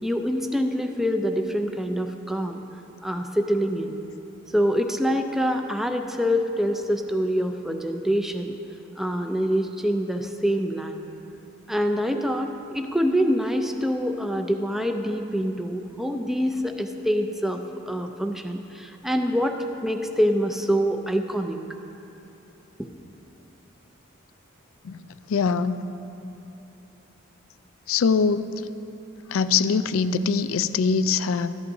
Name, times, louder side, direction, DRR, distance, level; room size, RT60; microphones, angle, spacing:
voice 1, 0.0-2.6 3.0-3.9 4.5-8.6 9.0-11.0 11.7-17.6 17.9-19.6 19.8-21.6, equal, ahead, 5 dB, 0.4 m, -25 dB
voice 2, 25.3-25.8 27.9-28.6 29.3-31.6, left 5 dB, 85° left, 13 dB, 0.4 m, -23 dB
14.0 x 11.0 x 2.7 m, 3.0 s
head